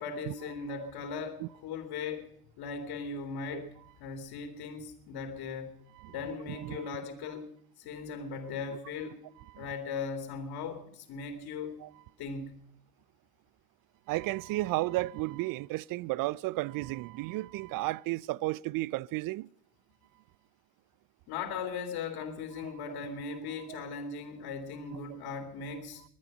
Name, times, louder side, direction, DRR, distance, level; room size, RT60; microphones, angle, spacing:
voice 1, 0.0-5.8 6.1-7.5 7.8-9.2 9.6-11.8 12.2-12.6 21.3-26.0, left 5 dB, 60° left, 2.7 m, -38 dB
voice 2, 6.5-6.9 8.7-8.8 9.5-9.7 11.8-11.9 14.1-19.5 22.6-22.7 23.7-23.8, right 19 dB, 50° right, 0.5 m, -33 dB
23.0 x 9.4 x 5.3 m
hypercardioid pair, 70°, 43 cm